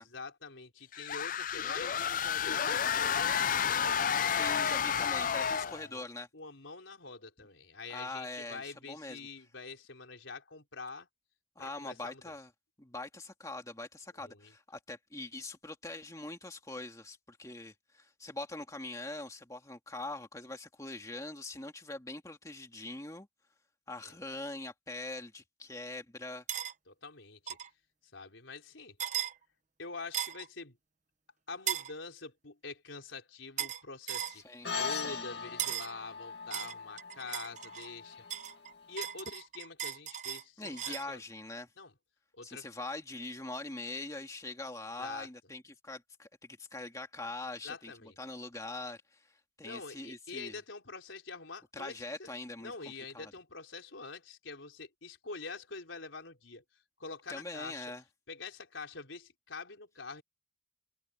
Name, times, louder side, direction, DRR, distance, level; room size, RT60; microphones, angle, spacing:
voice 1, 0.0-3.6 5.4-6.0 6.3-11.1 11.6-12.3 14.2-14.5 24.0-24.1 26.9-27.6 28.1-29.0 29.8-30.8 31.5-34.4 34.8-38.2 38.9-41.2 41.8-41.9 42.3-42.7 45.0-45.3 47.6-48.2 49.6-52.3 52.6-56.6 57.0-57.9 58.3-60.2, left 4 dB, 85° left, 4.1 m, -45 dB
sound 1, 0.9-5.9, left 8 dB, 45° left, 0.4 m, -31 dB
voice 2, 4.3-6.3 7.9-9.2 11.6-12.5 12.8-23.3 23.9-26.4 34.3-35.3 40.6-41.7 42.4-46.3 46.6-49.2 49.6-50.6 51.7-52.7 53.1-53.3 57.3-58.0, left 2 dB, 15° left, 2.2 m, -43 dB
sound 2, 26.5-26.7 27.5-27.7 29.0-29.3 30.1-30.5 31.7-31.9 33.6-33.8 34.1-34.4 35.6-35.9 36.5-37.9 38.3-41.1, right 10 dB, 40° right, 1.1 m, -37 dB
sound 3, 34.6-39.3, left 5 dB, 60° left, 2.1 m, -40 dB
head